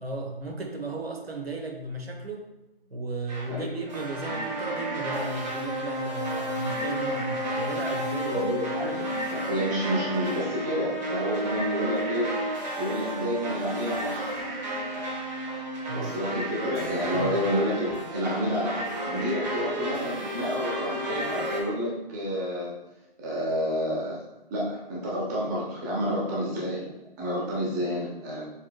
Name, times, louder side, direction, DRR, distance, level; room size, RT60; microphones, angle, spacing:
voice 1, 0.0-2.5 2.9-8.7 15.9-16.1 17.1-17.3, right 2 dB, 80° right, 2 dB, 1.1 m, -35 dB
trip-voice, 3.3-21.6, equal, 45° right, 1.4 m, -32 dB
voice 2, 8.3-12.4 12.8-14.3 15.9-22.7 23.2-24.2 24.5-26.9 27.2-28.4, equal, 20° right, -5 dB, 1.0 m, -29 dB
Keyboard (musical), 16.7-20.8, right 1 dB, 15° left, 0.6 m, -44 dB
7.1 x 3.2 x 2.3 m, 1.0 s
figure-of-eight pair, 145°, 30 cm